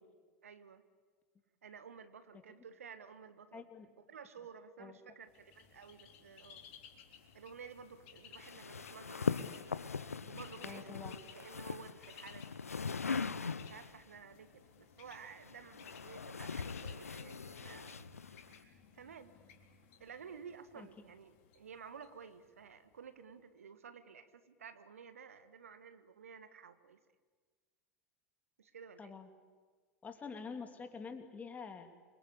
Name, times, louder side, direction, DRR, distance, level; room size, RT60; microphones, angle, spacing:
voice 1, 0.4-0.8 1.6-3.7 4.1-6.6 7.3-9.6 10.2-12.5 13.6-19.3 20.0-27.0 28.6-29.1, right 6 dB, 70° right, 11 dB, 1.5 m, -53 dB
voice 2, 3.5-3.9 4.8-5.0 10.6-11.1 20.8-20.9 29.0-29.3 30.0-31.9, left 5 dB, 20° left, 6 dB, 2.8 m, -47 dB
Bird, 5.3-23.0, left 7 dB, 50° left, 3.6 m, -60 dB
sound 1, 8.4-14.0 15.1-18.6, left 5 dB, 80° left, 0.8 m, -41 dB
28.0 x 23.5 x 8.5 m, 1.5 s
figure-of-eight pair, 85°, 8 cm